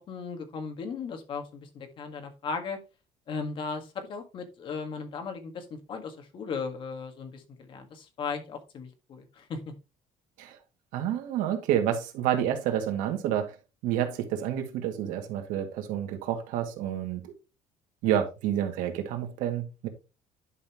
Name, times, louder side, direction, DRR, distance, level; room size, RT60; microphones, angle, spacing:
voice 1, 0.1-2.8 3.3-9.6, left 5 dB, 40° left, 1.7 m, -37 dB
voice 2, 10.9-13.6 13.8-17.3 18.0-19.9, right 10 dB, 80° right, 2.1 m, -29 dB
11.0 x 5.4 x 3.0 m
cardioid pair, 165°, 14 cm